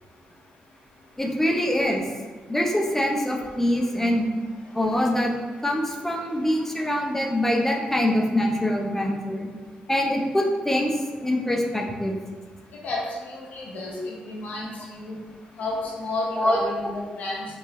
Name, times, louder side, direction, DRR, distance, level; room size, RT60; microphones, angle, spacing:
voice 1, 1.2-2.1 2.5-4.3 4.7-5.3 5.6-9.5 9.9-12.1 16.4-16.6, left 1 dB, 10° left, 0 dB, 0.7 m, -24 dB
voice 2, 12.8-15.2 15.6-17.5, left 2 dB, 70° left, -2 dB, 1.0 m, -31 dB
4.6 x 2.6 x 3.1 m, 1.3 s
cardioid pair, 70°, 3 cm